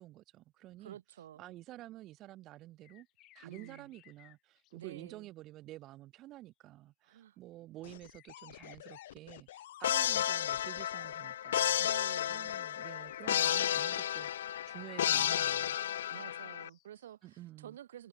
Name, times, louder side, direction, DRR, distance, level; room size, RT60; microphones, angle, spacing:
voice 1, 0.0-1.0 1.4-3.1 3.3-11.8 12.3-15.8 17.2-17.8, right 15 dB, 25° right, 1.1 m, -51 dB
voice 2, 0.8-1.5 3.4-3.9 4.7-5.3 7.0-7.4 11.8-12.6 16.1-18.1, right 11 dB, 80° right, 3.9 m, -50 dB
sound 1, 2.8-5.1 8.1-9.6 10.0-10.1 11.4-11.7 12.1-12.2 12.4-12.5 12.8-14.7 15.2-15.4 16.0-16.3 16.6-17.4, left 16 dB, 25° left, 4.9 m, -62 dB
sound 2, 7.8-11.2 12.2-13.8 14.5-14.8, left 13 dB, 65° left, 1.3 m, -53 dB
sound 3, 9.8-16.7, left 11 dB, 80° left, 0.3 m, -32 dB
supercardioid pair, 170°, 0 cm